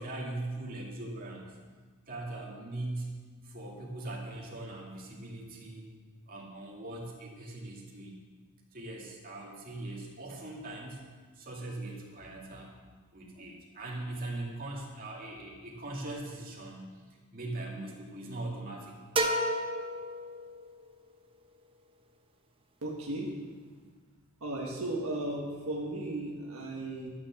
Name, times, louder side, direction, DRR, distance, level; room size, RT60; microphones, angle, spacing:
voice 1, 0.0-1.5 2.1-3.2 3.4-5.9 6.3-8.2 8.7-11.1 11.3-12.8 13.1-17.0 17.3-19.0, right 2 dB, 40° right, -3 dB, 2.3 m, -40 dB
sound 1, 19.2-20.9, right 1 dB, 25° right, 0.8 m, -31 dB
voice 2, 22.8-23.3 24.4-27.1, right 1 dB, 75° right, -2 dB, 1.6 m, -35 dB
12.5 x 7.1 x 7.3 m, 1.5 s
head